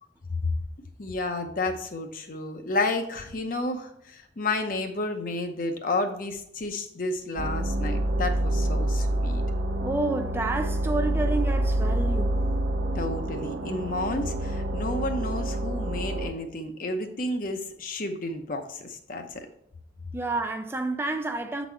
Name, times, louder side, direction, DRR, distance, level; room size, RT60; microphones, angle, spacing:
voice 1, 1.0-9.4 12.9-19.4, left 2 dB, 50° left, 0.8 m, -31 dB
sound 1, 7.4-16.3, right 1 dB, 90° right, 0.8 m, -27 dB
voice 2, 9.8-12.4 20.1-21.7, right 2 dB, 15° right, 0.3 m, -29 dB
7.3 x 4.1 x 4.5 m
head